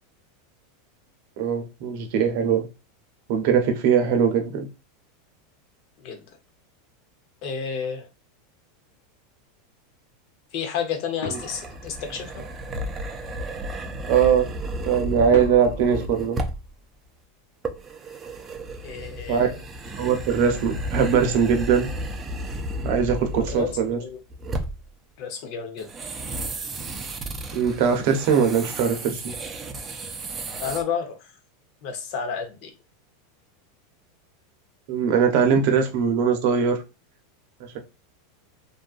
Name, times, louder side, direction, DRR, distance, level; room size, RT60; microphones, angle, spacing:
voice 1, 1.4-2.7 3.3-4.7 14.1-14.5 14.8-16.4 19.3-19.5 20.0-21.9 22.8-24.0 27.5-29.3 34.9-36.8, right 7 dB, 60° right, 0.7 m, -21 dB
voice 2, 7.4-8.1 10.5-12.4 18.8-19.6 23.4-24.2 25.2-25.9 30.6-31.3 31.8-32.7, left 6 dB, 55° left, 0.8 m, -31 dB
sound 1, 11.2-12.7 15.3-17.2, left 3 dB, 85° left, 1.1 m, -39 dB
sound 2, 11.3-16.7 17.6-24.0 24.3-24.9 25.8-30.8, right 1 dB, 20° right, 0.5 m, -33 dB
2.7 x 2.4 x 2.4 m
supercardioid pair, 125°, 0 cm